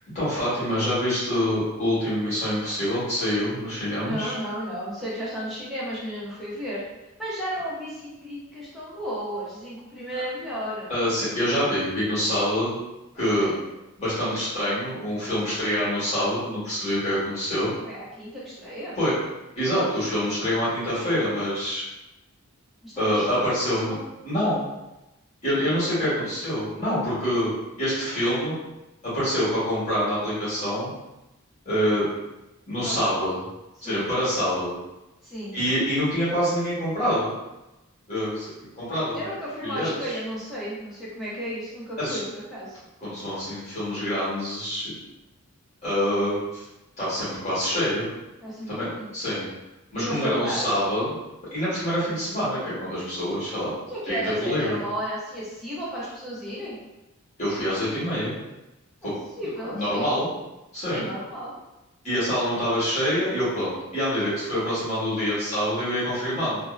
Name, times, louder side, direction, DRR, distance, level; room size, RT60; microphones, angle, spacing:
voice 1, 0.1-4.3 10.9-12.8 13.1-13.5 14.0-17.7 19.0-19.1 19.5-21.8 23.0-23.9 24.2-24.6 25.4-27.5 27.8-28.5 29.0-30.9 31.6-32.1 32.7-33.3 33.8-34.7 35.5-37.3 38.1-38.5 38.8-39.2 39.6-39.9 42.0-42.2 43.0-44.9 45.8-46.6 47.0-48.1 48.7-49.4 49.9-51.1 51.5-53.7 54.1-54.8 57.4-58.4 59.0-59.1 59.7-60.3 60.7-61.0 62.0-66.6, equal, 30° left, -11 dB, 1.3 m, -26 dB
voice 2, 4.0-6.8 7.2-10.9 13.2-13.6 17.8-19.0 22.8-24.0 25.9-26.1 32.8-33.2 33.8-34.1 35.2-35.6 39.1-42.8 48.4-49.1 50.0-50.8 53.9-56.8 59.0-60.1 60.9-61.5, equal, ahead, -9 dB, 0.7 m, -33 dB
2.6 x 2.0 x 2.4 m, 1.0 s
head